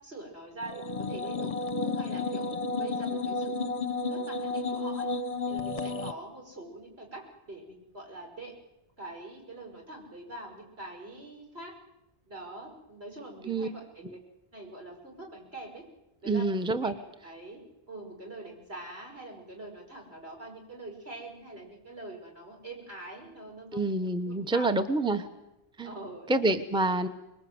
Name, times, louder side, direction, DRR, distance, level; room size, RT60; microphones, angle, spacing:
voice 1, 0.0-3.5 4.0-5.1 5.4-7.2 7.5-8.5 9.0-11.7 12.3-14.2 14.5-15.8 16.2-16.5 16.8-16.9 17.2-23.9 24.2-24.8 25.1-25.2 25.8-26.5 26.9-27.0, right 2 dB, 85° right, 1 dB, 5.9 m, -44 dB
sound 1, 0.6-6.1, left 3 dB, 35° left, 1.0 m, -32 dB
voice 2, 16.3-16.9 23.7-25.2 25.8-25.9 26.3-27.1, right 2 dB, 5° right, 8 dB, 1.0 m, -27 dB
25.5 x 21.0 x 7.9 m, 0.92 s
omnidirectional pair, 1.0 m